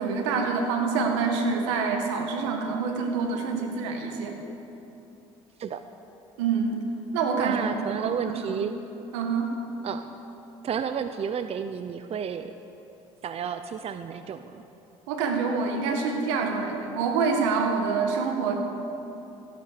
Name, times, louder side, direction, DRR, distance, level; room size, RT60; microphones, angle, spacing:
voice 1, 0.0-4.4 6.4-6.8 7.1-8.7 9.1-9.5 15.1-18.6, right 5 dB, 85° right, 3 dB, 1.9 m, -26 dB
voice 2, 7.4-8.8 9.8-10.1 10.6-12.5 13.2-14.6, right 7 dB, 45° right, 10 dB, 0.7 m, -31 dB
15.5 x 11.5 x 6.9 m, 2.9 s
hypercardioid pair, 70°, 15 cm